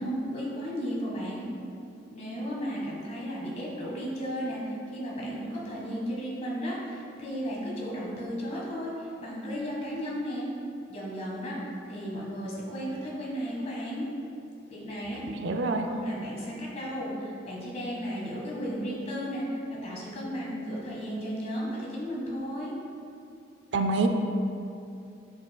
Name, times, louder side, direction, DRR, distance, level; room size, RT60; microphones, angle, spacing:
voice 1, 0.0-1.5 2.1-10.5 10.9-14.1 14.7-15.2 15.8-22.7, equal, 35° left, -5 dB, 1.4 m, -34 dB
voice 2, 15.4-15.9 23.7-24.1, right 3 dB, 65° right, 5 dB, 0.4 m, -26 dB
7.3 x 6.2 x 2.3 m, 2.7 s
head